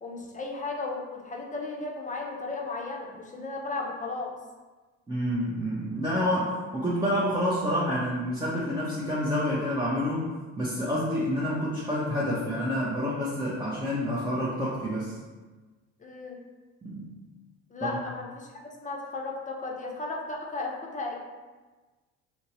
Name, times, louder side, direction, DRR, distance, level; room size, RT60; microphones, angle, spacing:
voice 1, 0.0-4.3 16.0-16.4 17.7-18.5 18.8-21.2, left 3 dB, 20° left, 0 dB, 0.7 m, -35 dB
voice 2, 5.1-10.3 10.6-15.2 16.8-17.1 17.8-17.9, equal, 10° right, -8 dB, 0.7 m, -28 dB
2.8 x 2.7 x 3.0 m, 1.3 s
hypercardioid pair, 60°, 37 cm